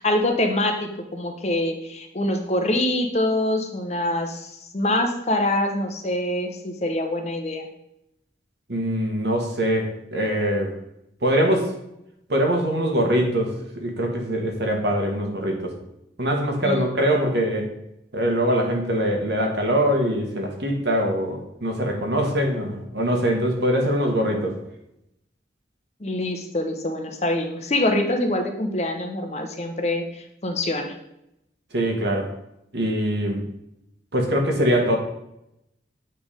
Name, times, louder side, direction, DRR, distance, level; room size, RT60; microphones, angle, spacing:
voice 1, 0.0-7.7 16.6-16.9 26.0-30.9, left 1 dB, 35° left, 4 dB, 0.8 m, -25 dB
voice 2, 8.7-10.7 11.2-11.7 12.3-15.7 16.2-17.7 18.1-24.5 31.7-32.3 32.7-33.4 34.1-35.0, equal, 70° right, 1 dB, 1.4 m, -23 dB
8.3 x 3.4 x 5.0 m, 0.83 s
head